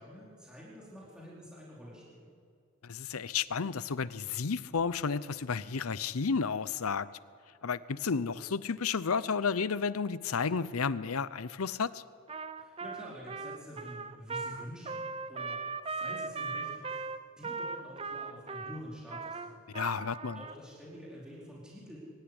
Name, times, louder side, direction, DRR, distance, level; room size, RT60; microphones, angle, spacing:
voice 1, 0.0-2.3 12.6-17.0 17.4-19.6 20.3-22.0, equal, 5° right, -6 dB, 4.3 m, -48 dB
voice 2, 2.8-7.1 7.6-12.0 19.7-20.4, left 5 dB, 85° left, 16 dB, 0.7 m, -32 dB
Trumpet, 12.3-20.6, right 4 dB, 25° right, 0.7 m, -38 dB
23.5 x 13.5 x 9.8 m, 2.3 s
head